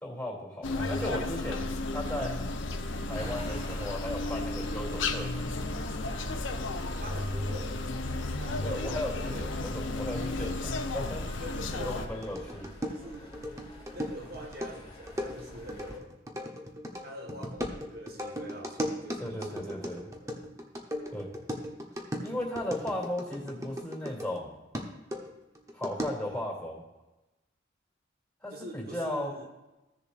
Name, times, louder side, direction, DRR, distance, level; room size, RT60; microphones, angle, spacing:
voice 1, 0.0-2.3 3.0-5.3 8.6-11.2 11.8-12.7 19.2-20.1 21.1-21.3 22.2-24.5 25.7-26.8 28.4-29.3, left 1 dB, 5° left, -4 dB, 2.7 m, -36 dB
sound 1, 0.6-12.1, left 2 dB, 75° left, 0.8 m, -33 dB
sound 2, 3.1-16.0, left 1 dB, 25° left, 1.9 m, -47 dB
voice 2, 7.0-7.8 8.3-9.5 11.4-12.2 12.9-13.4 13.9-16.1 17.0-20.5 28.5-29.5, right 1 dB, 50° right, 2 dB, 1.4 m, -45 dB
sound 3, 12.2-24.4 24.7-26.4, equal, 15° right, 0.9 m, -37 dB
15.5 x 6.9 x 2.5 m, 1.0 s
head